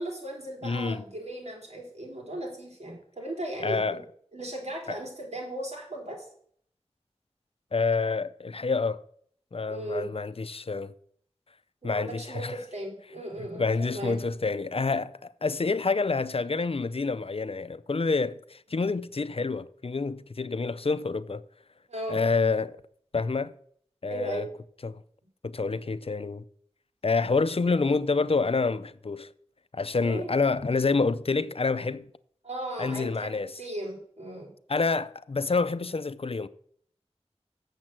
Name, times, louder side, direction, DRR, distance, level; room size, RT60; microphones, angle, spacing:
voice 1, 0.0-4.0 4.3-6.2 9.7-10.1 11.8-14.2 21.9-22.2 24.0-24.5 29.9-30.3 32.4-34.5, right 1 dB, 75° right, 3.5 m, -37 dB
voice 2, 0.6-1.0 3.6-4.0 7.7-9.0 9.5-10.9 11.8-12.6 13.4-21.4 22.1-22.8 23.1-23.5 24.0-24.5 24.8-25.0 25.4-26.4 27.0-29.3 29.7-32.0 32.8-33.5 34.7-36.5, left 4 dB, 55° left, 0.5 m, -28 dB
7.7 x 7.3 x 7.4 m
wide cardioid pair, 50°, 11 cm